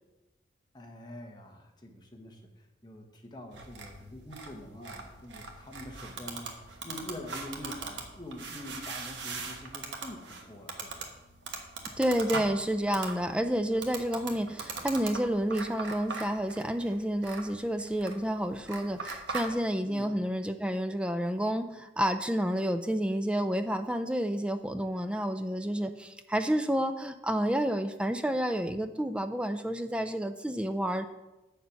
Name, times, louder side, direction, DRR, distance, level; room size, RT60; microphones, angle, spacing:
voice 1, 0.7-11.1 19.8-20.1, left 1 dB, 25° left, 2 dB, 1.1 m, -45 dB
sound 1, 3.5-19.5, right 4 dB, 85° right, 1.3 m, -41 dB
voice 2, 12.0-31.1, equal, 5° right, 8 dB, 0.4 m, -30 dB
7.5 x 6.8 x 5.8 m, 1.0 s
head